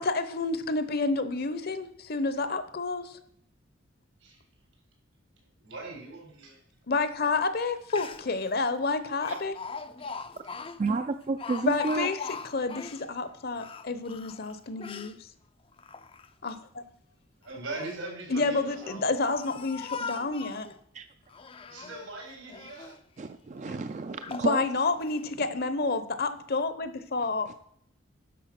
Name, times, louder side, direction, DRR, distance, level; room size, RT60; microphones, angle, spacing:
voice 1, 0.0-3.2 6.9-9.5 11.6-15.3 16.4-16.8 18.3-20.7 24.3-27.5, left 3 dB, 50° left, 12 dB, 0.8 m, -29 dB
voice 2, 5.6-6.6 17.4-19.0 21.7-22.9, right 2 dB, 85° right, 0 dB, 4.5 m, -40 dB
Speech, 7.6-7.7 7.9-8.4 9.2-13.1 13.5-15.2 15.7-16.5 17.4-18.0 18.7-20.7 21.3-22.1 22.5-23.0 23.6-23.7 24.2-24.5 25.0-25.2, left 5 dB, 25° left, 0.5 m, -41 dB
voice 3, 10.8-12.1 20.9-21.1 23.2-24.7 27.5-27.6, right 3 dB, 35° right, 8 dB, 0.4 m, -31 dB
10.5 x 6.7 x 5.9 m, 0.69 s
head